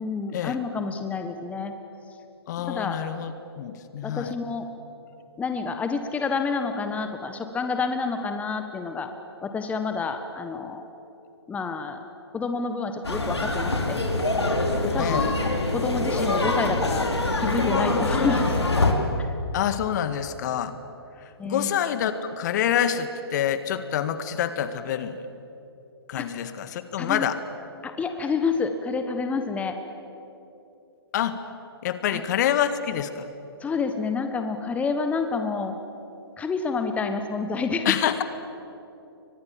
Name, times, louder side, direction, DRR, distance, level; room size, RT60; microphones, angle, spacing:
voice 1, 0.0-1.7 2.6-3.0 4.0-4.7 5.4-9.1 9.4-10.8 11.5-12.0 12.3-14.0 14.8-15.2 15.7-17.1 17.4-18.6 19.2-19.3 21.4-21.7 26.2-26.3 27.0-27.3 27.8-29.7 32.1-32.2 33.6-35.7 36.4-37.9, left 4 dB, 10° left, 7 dB, 1.4 m, -28 dB
voice 2, 2.5-4.3 15.0-15.3 19.5-20.7 21.4-25.2 26.1-27.4 31.1-31.4 31.8-33.3 37.9-38.2, left 10 dB, 45° left, 11 dB, 1.7 m, -27 dB
sound 1, 13.0-18.9, left 2 dB, 85° left, 3.8 m, -24 dB
29.5 x 24.0 x 7.6 m, 2.9 s
figure-of-eight pair, 130°, 14 cm